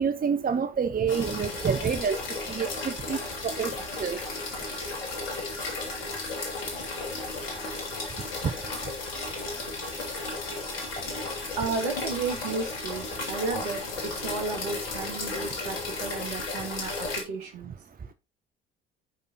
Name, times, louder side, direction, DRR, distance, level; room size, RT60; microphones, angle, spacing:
voice 1, 0.0-2.2 2.5-3.2 3.4-3.7 4.0-4.2, right 6 dB, 30° right, 0.9 m, -27 dB
sound 1, 1.1-17.2, left 3 dB, 80° left, 2.3 m, -34 dB
voice 2, 11.6-17.8, right 4 dB, 70° right, 2.7 m, -33 dB
14.5 x 5.3 x 2.8 m
hypercardioid pair, 55°, 29 cm